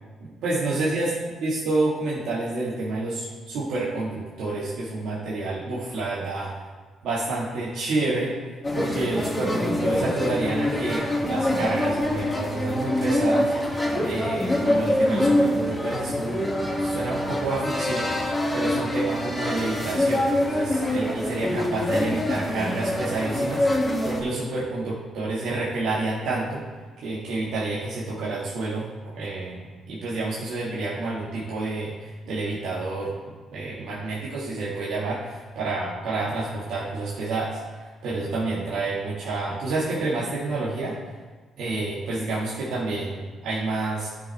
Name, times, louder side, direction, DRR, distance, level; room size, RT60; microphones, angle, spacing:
voice 1, 0.2-1.1 1.4-6.5 7.0-8.3 8.7-13.5 14.0-26.6 27.0-28.9 29.1-33.1 33.5-41.0 41.6-44.1, right 2 dB, 80° right, -8 dB, 2.1 m, -29 dB
sound 1, 8.6-24.2, left 1 dB, 20° left, 2.3 m, -25 dB
13.0 x 6.2 x 3.6 m, 1.4 s
cardioid pair, 90°, 0 cm